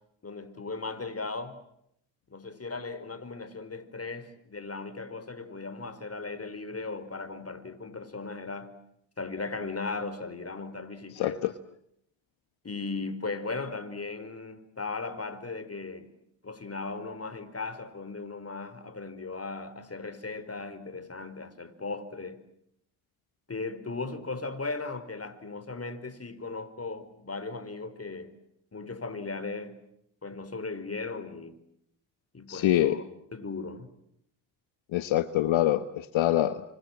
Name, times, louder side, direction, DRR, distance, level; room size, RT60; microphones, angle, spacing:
voice 1, 0.2-1.6 2.3-8.7 9.2-11.6 12.6-16.1 16.4-22.4 23.5-28.3 28.7-29.8 30.2-31.6 32.3-33.0 33.3-33.9, left 3 dB, 30° left, 4.6 m, -37 dB
voice 2, 11.1-11.5 32.5-33.0 34.9-36.6, left 13 dB, 65° left, 1.3 m, -25 dB
29.5 x 26.0 x 7.6 m
hypercardioid pair, 50°, 49 cm